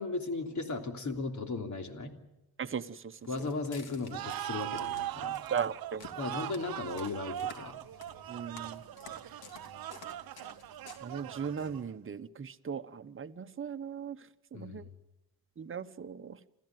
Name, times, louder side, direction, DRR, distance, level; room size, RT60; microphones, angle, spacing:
voice 1, 0.0-2.2 3.3-5.4 6.2-7.8 14.5-14.9, left 3 dB, 50° left, 6 dB, 3.3 m, -36 dB
voice 2, 2.6-3.2 5.5-6.1 8.3-8.8 11.0-14.2 14.5-14.9 15.6-16.4, right 7 dB, 35° right, 9 dB, 1.0 m, -38 dB
Walk footsteps, 3.2-11.9, left 5 dB, 85° left, 3.1 m, -54 dB
sound 1, 4.1-12.0, right 13 dB, 70° right, 0.7 m, -40 dB
28.0 x 14.5 x 9.3 m, 0.96 s
cardioid pair, 105°, 36 cm